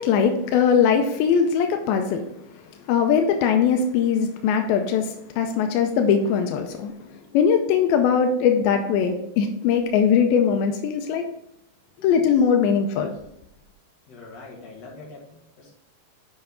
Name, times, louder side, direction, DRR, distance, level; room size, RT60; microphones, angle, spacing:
voice 1, 0.0-2.5 2.9-11.3 12.0-13.2, left 7 dB, 90° left, 5 dB, 2.1 m, -21 dB
voice 2, 12.0-12.3 14.1-15.7, left 3 dB, 45° left, -3 dB, 2.6 m, -44 dB
8.1 x 5.3 x 3.7 m, 0.81 s
omnidirectional pair, 4.9 m